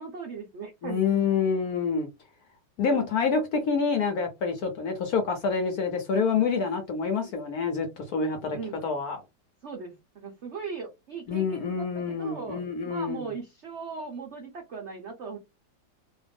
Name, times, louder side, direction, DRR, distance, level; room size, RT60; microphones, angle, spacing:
voice 1, 0.0-1.0 2.8-3.1 7.2-7.3 8.5-8.8 9.6-15.4, right 5 dB, 75° right, 0.6 m, -39 dB
voice 2, 0.8-2.1 2.8-8.6 8.8-9.2 11.3-13.3, left 5 dB, 65° left, 1.0 m, -27 dB
3.0 x 2.5 x 3.3 m
omnidirectional pair, 2.1 m